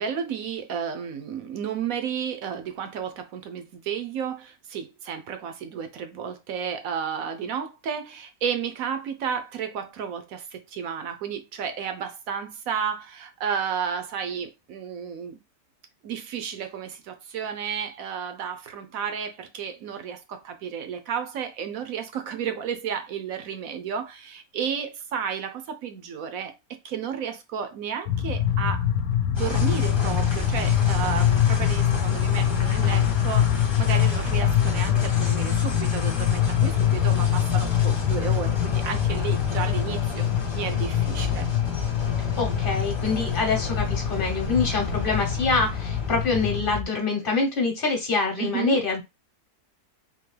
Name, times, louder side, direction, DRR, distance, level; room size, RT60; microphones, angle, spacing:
voice 1, 0.0-15.4 16.0-28.9 29.3-40.3 40.5-41.5 48.4-48.8, right 7 dB, 70° right, 1.0 m, -32 dB
sound 1, 28.1-46.8, left 10 dB, 70° left, 1.0 m, -24 dB
sound 2, 29.3-46.6, left 1 dB, 20° left, 0.8 m, -34 dB
voice 2, 42.4-49.0, left 4 dB, 35° left, 1.2 m, -25 dB
3.7 x 2.6 x 3.2 m
omnidirectional pair, 1.7 m